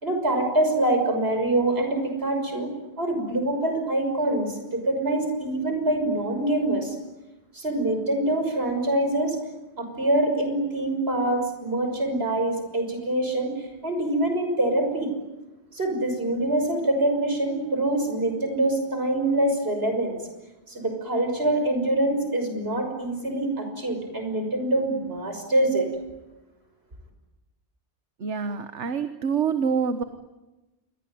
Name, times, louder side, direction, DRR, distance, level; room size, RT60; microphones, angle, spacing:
voice 1, 0.0-2.7 3.0-7.0 7.5-9.4 9.8-13.5 13.8-15.1 15.7-20.2 20.7-25.9, right 1 dB, 60° right, 5 dB, 6.5 m, -25 dB
voice 2, 28.2-30.0, right 6 dB, 75° right, 9 dB, 1.6 m, -26 dB
27.5 x 23.0 x 9.4 m, 1.0 s
omnidirectional pair, 1.2 m